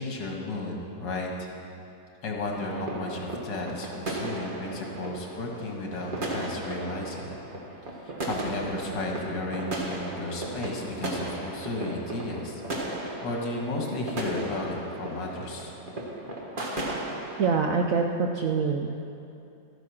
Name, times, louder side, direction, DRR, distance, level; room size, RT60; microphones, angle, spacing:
voice 1, 0.0-1.5 2.2-7.4 8.0-12.6 13.2-15.7, left 2 dB, 75° left, 0 dB, 2.2 m, -33 dB
sound 1, 2.4-17.5, right 1 dB, 30° right, 1.4 m, -36 dB
voice 2, 17.4-19.0, right 5 dB, 65° right, 3 dB, 0.8 m, -25 dB
13.0 x 9.0 x 6.0 m, 2.7 s
omnidirectional pair, 2.0 m